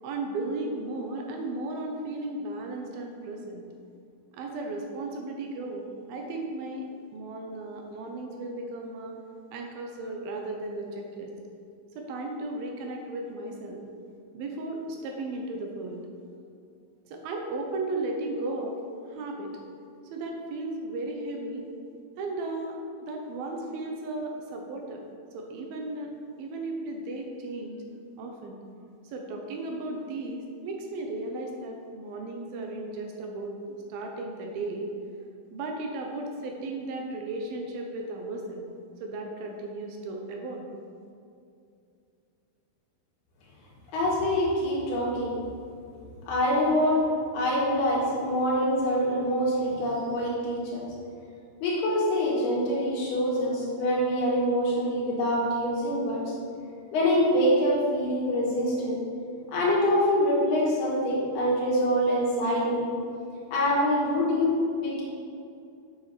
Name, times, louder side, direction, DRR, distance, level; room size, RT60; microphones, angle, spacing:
voice 1, 0.0-3.6 4.3-9.1 9.5-11.3 12.0-13.8 14.3-16.1 17.1-19.5 20.1-21.7 22.2-25.0 25.3-26.1 26.4-27.8 28.2-28.6 29.0-34.9 35.5-38.7 39.0-40.7, right 2 dB, 75° right, 1 dB, 2.6 m, -35 dB
voice 2, 43.9-45.4 46.3-47.0 47.3-50.8 51.6-56.2 56.9-59.0 59.5-62.9 63.5-65.0, equal, 80° left, -5 dB, 3.7 m, -25 dB
7.4 x 6.8 x 5.9 m, 2.5 s
omnidirectional pair, 4.6 m